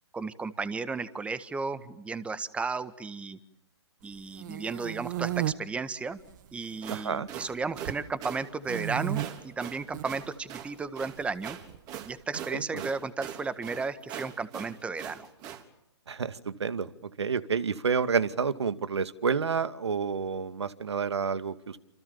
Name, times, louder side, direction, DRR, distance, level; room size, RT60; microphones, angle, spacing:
voice 1, 0.1-3.4 4.0-6.2 6.5-11.6 12.0-15.3, right 4 dB, 10° right, 14 dB, 1.6 m, -34 dB
sound 1, 4.1-5.5 6.2-6.8 7.1-8.0 8.6-9.3 9.8-10.1 11.2-12.1, right 14 dB, 45° right, 1.6 m, -33 dB
sound 2, 6.6-15.6, right 9 dB, 25° right, 3.7 m, -42 dB
voice 2, 6.9-7.3 12.5-12.9 16.1-16.9 17.2-21.8, right 6 dB, 75° right, 12 dB, 2.3 m, -29 dB
29.0 x 27.5 x 7.2 m, 0.83 s
hypercardioid pair, 130°, 14 cm